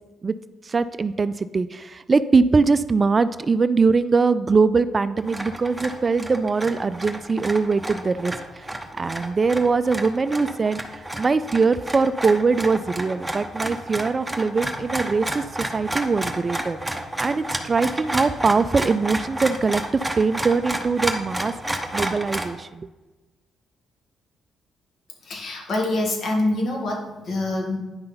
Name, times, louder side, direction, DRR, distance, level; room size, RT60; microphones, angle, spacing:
voice 1, 0.6-16.8 17.2-21.5 21.9-22.9, right 4 dB, 30° right, 14 dB, 0.3 m, -22 dB
sound 1, 5.2-22.5, right 1 dB, 5° right, 0.8 m, -31 dB
voice 2, 25.2-27.8, left 2 dB, 55° left, 0 dB, 1.9 m, -25 dB
9.6 x 5.7 x 3.9 m, 1.1 s
cardioid pair, 90°, 0 cm